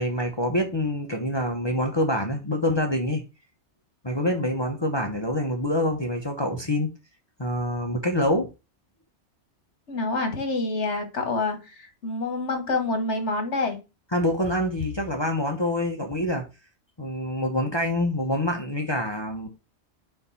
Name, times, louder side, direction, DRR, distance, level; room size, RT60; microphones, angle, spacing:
voice 1, 0.0-3.2 4.0-6.9 7.4-8.5 14.1-16.4 17.0-19.5, left 1 dB, 25° left, 0.8 m, -26 dB
voice 2, 9.9-13.8, left 3 dB, 85° left, 1.6 m, -27 dB
4.5 x 4.0 x 5.5 m
omnidirectional pair, 1.2 m